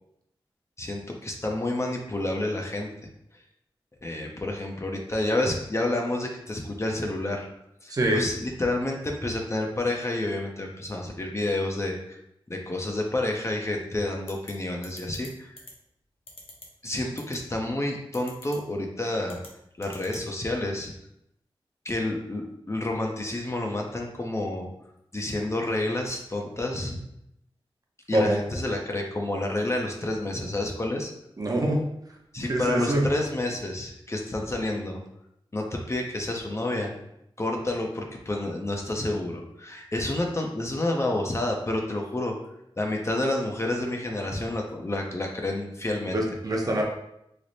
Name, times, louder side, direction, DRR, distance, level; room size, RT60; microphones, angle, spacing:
voice 1, 0.8-2.9 4.0-7.5 7.8-12.2 12.5-15.5 16.8-19.4 19.8-20.9 21.9-24.7 25.1-27.0 28.1-31.1 32.3-35.0 35.5-37.0 37.4-42.3 42.8-46.2, left 1 dB, 30° left, 1 dB, 0.5 m, -29 dB
voice 2, 7.9-8.2 28.1-28.4 31.4-31.8 32.5-33.0 46.1-46.8, right 1 dB, 40° right, -1 dB, 0.7 m, -24 dB
sound 1, 14.3-14.5 14.8-15.3 15.6-15.7 16.3-16.7 17.2-17.4 18.1-18.6 19.3-19.5 19.8-20.2, left 2 dB, 80° left, 0.7 m, -44 dB
3.2 x 2.0 x 3.9 m, 0.78 s
wide cardioid pair, 70°, 9 cm